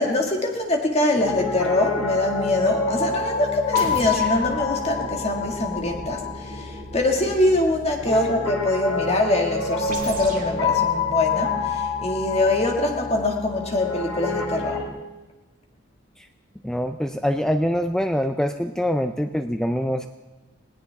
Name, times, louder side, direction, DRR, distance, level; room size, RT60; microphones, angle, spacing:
voice 1, 0.0-14.8, left 2 dB, 30° left, 2 dB, 2.0 m, -23 dB
Piano, 1.2-14.9, left 5 dB, 90° left, 3.1 m, -28 dB
sound 1, 3.8-8.1 9.9-10.6, right 2 dB, 45° right, 2.4 m, -38 dB
voice 2, 16.6-20.1, equal, 5° left, 7 dB, 0.4 m, -24 dB
20.0 x 18.0 x 3.6 m, 1.1 s
head